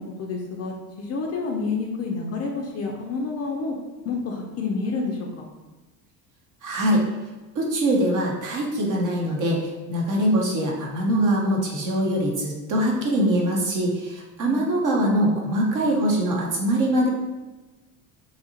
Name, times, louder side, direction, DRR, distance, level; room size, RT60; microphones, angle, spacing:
voice 1, 0.0-3.7 4.1-5.4 14.4-14.6, left 4 dB, 35° left, 1 dB, 0.4 m, -29 dB
voice 2, 6.6-7.0 7.5-17.1, right 1 dB, 40° right, -1 dB, 0.9 m, -23 dB
2.8 x 2.4 x 2.7 m, 1.2 s
hypercardioid pair, 70°, 46 cm